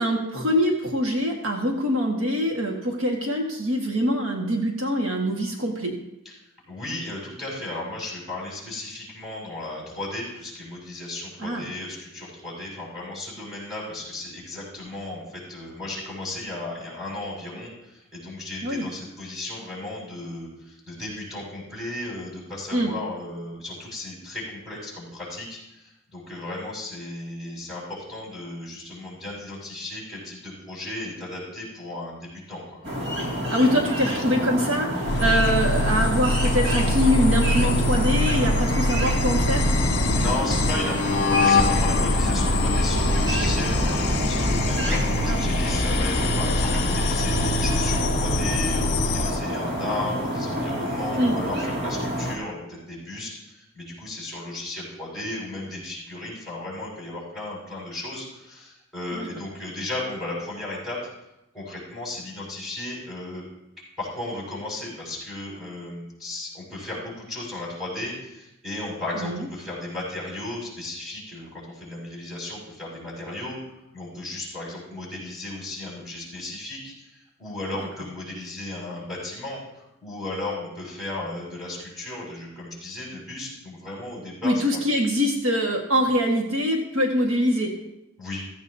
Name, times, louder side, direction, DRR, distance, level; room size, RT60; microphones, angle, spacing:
voice 1, 0.0-5.9 11.4-11.6 18.6-18.8 22.7-22.9 33.5-39.7 45.3-45.4 51.1-51.4 59.1-59.3 69.2-69.4 84.4-87.7, equal, 65° right, 0 dB, 1.6 m, -24 dB
voice 2, 6.7-32.8 40.1-61.0 61.5-63.4 64.0-73.6 73.9-84.8 88.2-88.4, left 2 dB, ahead, -6 dB, 6.2 m, -35 dB
sound 1, 32.8-52.4, equal, 50° right, 2.4 m, -29 dB
sound 2, 35.0-49.4, left 2 dB, 50° left, 1.2 m, -23 dB
16.0 x 15.0 x 2.8 m, 0.90 s
head